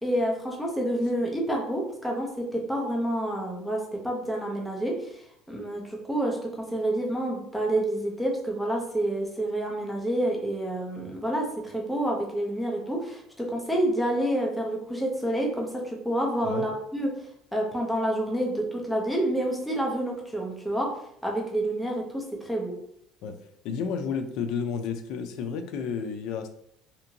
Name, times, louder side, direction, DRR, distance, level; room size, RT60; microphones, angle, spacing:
voice 1, 0.0-5.2 5.5-17.2 17.5-22.8, right 1 dB, ahead, -1 dB, 0.5 m, -28 dB
voice 2, 23.6-26.5, left 6 dB, 65° left, 6 dB, 0.4 m, -31 dB
2.8 x 2.6 x 2.6 m, 0.69 s
cardioid pair, 150°, 0 cm